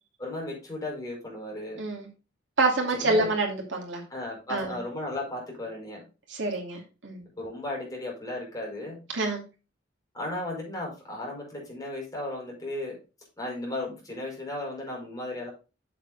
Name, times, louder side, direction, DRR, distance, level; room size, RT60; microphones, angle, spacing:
voice 1, 0.2-1.8 2.9-3.3 4.1-6.0 7.4-9.0 10.1-13.0 13.4-15.5, left 1 dB, 20° left, -2 dB, 5.2 m, -35 dB
voice 2, 2.6-4.0 4.5-4.8 6.3-7.2 9.1-9.4, right 2 dB, 80° right, 1 dB, 2.6 m, -27 dB
7.5 x 7.5 x 4.1 m, 0.31 s
head